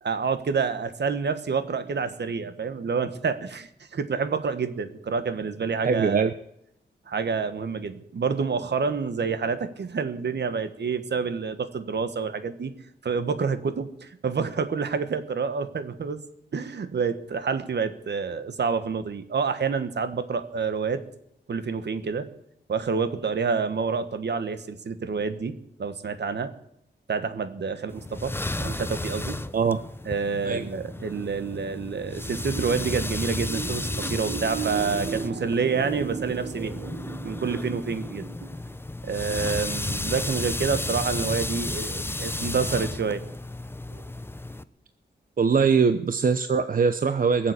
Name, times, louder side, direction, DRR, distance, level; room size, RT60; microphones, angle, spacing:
voice 1, 0.0-6.3 7.1-12.7 13.0-16.2 16.5-21.0 21.5-22.3 22.7-25.5 25.8-26.5 27.1-29.4 30.0-38.5 39.0-43.2 43.9-44.0, right 5 dB, 65° right, 11 dB, 1.4 m, -28 dB
voice 2, 5.8-6.3 29.5-29.8 30.4-30.7 45.4-47.5, right 5 dB, 50° right, 10 dB, 0.7 m, -22 dB
sound 1, 27.9-44.6, left 2 dB, 10° left, 0.6 m, -33 dB
21.5 x 7.4 x 8.5 m, 0.76 s
wide cardioid pair, 115°, 19 cm